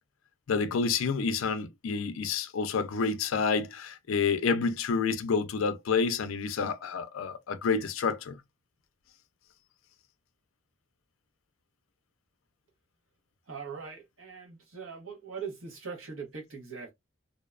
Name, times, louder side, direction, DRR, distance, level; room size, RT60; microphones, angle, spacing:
voice 1, 0.5-8.4, left 5 dB, 75° left, 0.4 m, -29 dB
voice 2, 13.5-16.9, right 5 dB, 75° right, 1.0 m, -41 dB
2.6 x 2.2 x 2.3 m
head